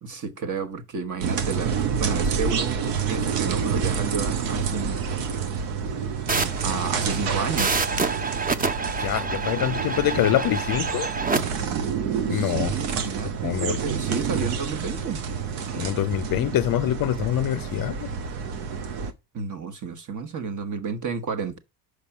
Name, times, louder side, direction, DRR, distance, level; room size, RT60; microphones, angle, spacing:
voice 1, 0.0-5.0 6.6-7.8 12.3-15.2 19.3-21.6, right 5 dB, 40° right, 1.3 m, -31 dB
sound 1, 1.2-19.1, right 6 dB, 85° right, 1.1 m, -28 dB
sound 2, 6.3-11.4, right 4 dB, 20° right, 0.6 m, -28 dB
voice 2, 9.0-11.1 12.3-12.7 13.4-13.8 15.8-18.1, left 13 dB, 45° left, 0.5 m, -25 dB
5.3 x 5.0 x 5.9 m
supercardioid pair, 80°, 49 cm